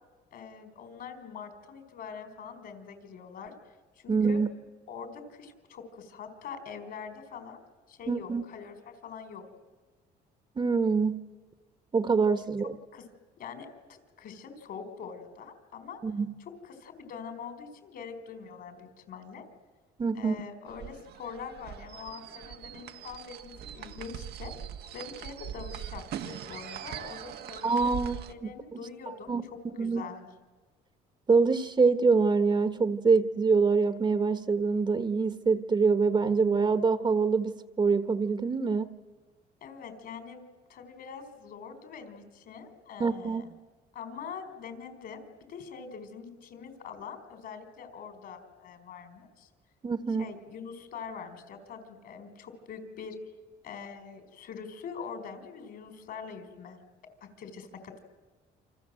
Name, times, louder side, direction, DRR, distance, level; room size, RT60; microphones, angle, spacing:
voice 1, 0.3-3.5 3.9-4.4 4.9-7.6 7.9-9.5 12.4-12.5 12.9-13.0 13.4-16.0 16.4-19.4 20.1-24.5 24.9-27.8 28.3-30.3 39.6-43.5 43.9-49.5 50.2-53.2 53.6-56.8 57.2-58.0, left 6 dB, 65° left, 4.6 m, -44 dB
voice 2, 4.1-4.5 8.1-8.4 10.6-11.3 11.9-12.8 16.0-16.3 20.0-20.4 27.6-28.8 29.3-29.4 29.8-30.0 31.3-39.0 43.0-43.5 49.8-50.3, right 4 dB, 25° right, 1.3 m, -25 dB
sound 1, 20.7-28.3, right 9 dB, 70° right, 1.3 m, -41 dB
28.5 x 26.5 x 7.7 m
cardioid pair, 110°, 17 cm